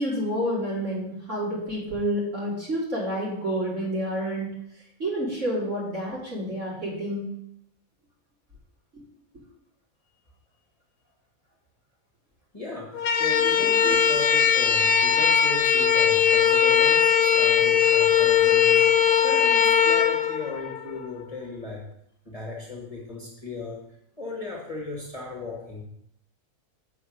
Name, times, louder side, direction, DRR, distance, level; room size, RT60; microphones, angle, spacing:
voice 1, 0.0-4.5 5.0-7.3 8.9-9.0 13.8-14.0, equal, 50° right, -6 dB, 3.5 m, -29 dB
voice 2, 12.5-21.8 22.2-23.8 24.2-25.8, left 3 dB, 25° left, -3 dB, 1.6 m, -36 dB
sound 1, 12.9-21.1, left 7 dB, 85° left, 1.2 m, -20 dB
7.7 x 4.9 x 6.4 m, 0.73 s
omnidirectional pair, 1.7 m